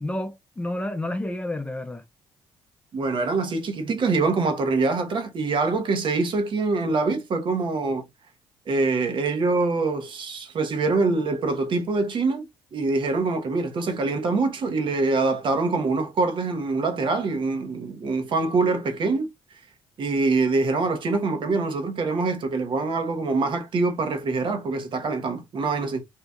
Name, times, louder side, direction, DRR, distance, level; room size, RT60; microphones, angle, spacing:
voice 1, 0.0-2.0, left 1 dB, 10° left, 0.6 m, -30 dB
voice 2, 2.9-8.0 8.7-19.3 20.0-26.0, right 3 dB, 55° right, 1.0 m, -24 dB
2.8 x 2.4 x 3.5 m
cardioid pair, 90°, 10 cm